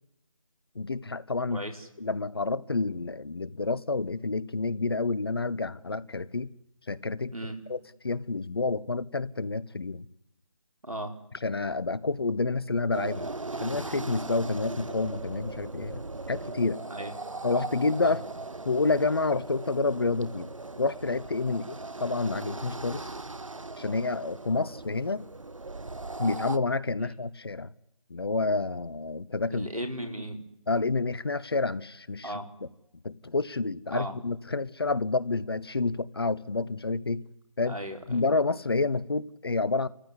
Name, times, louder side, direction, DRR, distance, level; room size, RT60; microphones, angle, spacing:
voice 1, 0.7-1.6 2.0-6.5 6.9-7.3 7.7-7.8 8.0-10.1 11.4-13.3 13.6-16.0 16.3-16.8 17.4-18.2 18.6-20.5 20.8-21.7 22.0-23.1 23.8-25.3 26.2-27.7 28.1-29.7 30.7-32.3 33.0-37.2 37.6-37.8 38.1-39.9, left 3 dB, 45° left, 0.9 m, -29 dB
voice 2, 1.5-1.9 7.3-7.6 10.8-11.1 16.9-17.1 18.0-18.2 21.5-21.6 27.0-27.1 29.5-30.4 32.2-32.5 33.9-34.1 37.6-38.2, right 1 dB, 85° right, 4.7 m, -36 dB
sound 1, 12.9-26.6, right 3 dB, 65° right, 1.3 m, -39 dB
29.5 x 15.0 x 9.8 m
figure-of-eight pair, 160°, 18 cm